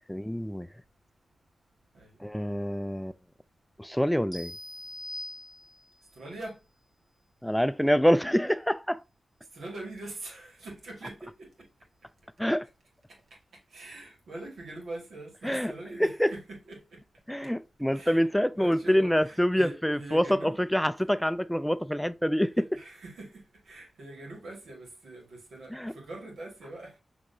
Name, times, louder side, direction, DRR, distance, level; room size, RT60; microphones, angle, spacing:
voice 1, 0.1-0.7 2.2-3.1 3.8-4.5 7.4-9.0 12.4-12.7 15.4-15.7 16.0-16.3 17.3-22.5 25.7-25.9, equal, 5° left, 0.3 m, -26 dB
sound 1, 4.3-6.1, left 1 dB, 20° right, 2.1 m, -42 dB
voice 2, 6.1-6.6 9.5-11.7 13.7-17.0 17.9-18.2 18.5-20.6 22.4-27.0, right 2 dB, 85° right, 1.8 m, -43 dB
6.2 x 2.9 x 2.7 m
cardioid pair, 45°, 0 cm